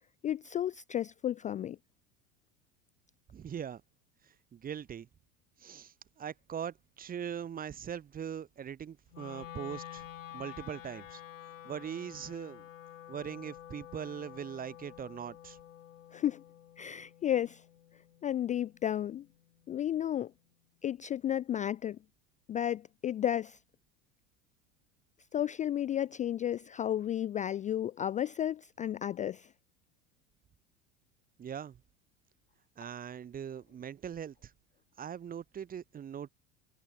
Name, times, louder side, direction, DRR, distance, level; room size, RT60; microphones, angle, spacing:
voice 1, 0.2-1.8 16.1-16.4 16.8-17.6 18.2-19.3 19.7-20.3 20.8-22.0 22.5-23.6 25.3-29.5, left 11 dB, 20° left, 0.4 m, -33 dB
voice 2, 3.3-3.8 4.5-5.1 5.6-10.1 10.3-11.2 11.6-12.6 13.1-15.6 31.4-31.8 32.8-34.5 35.0-36.3, right 8 dB, 25° right, 0.8 m, -41 dB
Wind instrument woodwind instrument, 9.1-19.3, left 11 dB, 85° left, 1.7 m, -50 dB
hypercardioid pair, 85°, 38 cm